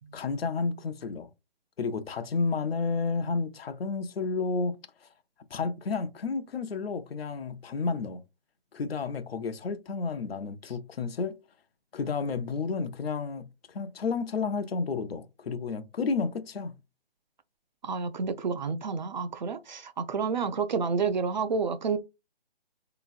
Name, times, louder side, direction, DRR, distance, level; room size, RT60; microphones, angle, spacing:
voice 1, 0.1-1.3 1.8-5.1 5.5-8.2 8.7-11.4 11.9-16.7, left 4 dB, 75° left, 0.6 m, -31 dB
voice 2, 17.8-22.0, right 5 dB, 50° right, 0.5 m, -29 dB
3.4 x 2.9 x 2.4 m
hypercardioid pair, 160°, 30 cm